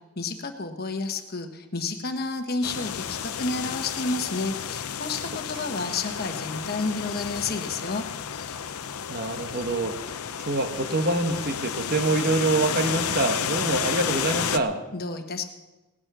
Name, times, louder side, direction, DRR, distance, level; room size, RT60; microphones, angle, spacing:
voice 1, 0.2-8.0 14.9-15.4, left 3 dB, 45° left, 5 dB, 1.2 m, -30 dB
sound 1, 2.6-14.6, left 8 dB, 75° left, 0.6 m, -31 dB
voice 2, 9.1-14.8, right 2 dB, 45° right, 6 dB, 1.2 m, -26 dB
19.0 x 8.6 x 6.1 m, 1.1 s
head